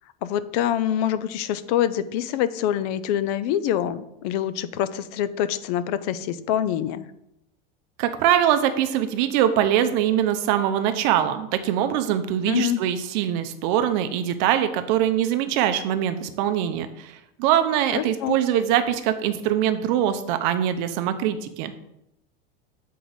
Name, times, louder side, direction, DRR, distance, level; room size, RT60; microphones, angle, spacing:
voice 1, 0.2-7.1 12.5-12.8 17.9-18.4, left 10 dB, 45° left, 15 dB, 0.4 m, -25 dB
voice 2, 8.0-21.7, right 10 dB, 50° right, 9 dB, 0.6 m, -23 dB
7.7 x 4.6 x 4.0 m, 0.83 s
supercardioid pair, 170°, 30 cm